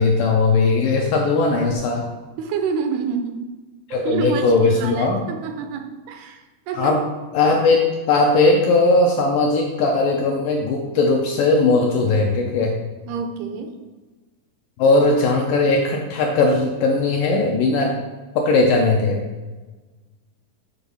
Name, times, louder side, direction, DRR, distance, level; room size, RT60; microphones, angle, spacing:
voice 1, 0.0-2.1 3.9-5.2 6.8-7.0 7.3-7.8 8.1-12.8 14.8-17.9 18.4-19.2, left 3 dB, 80° left, 0 dB, 2.0 m, -18 dB
voice 2, 2.4-3.5 4.0-7.0 13.1-13.7, right 5 dB, 85° right, 5 dB, 2.6 m, -28 dB
8.5 x 3.9 x 5.4 m, 1.2 s
omnidirectional pair, 4.6 m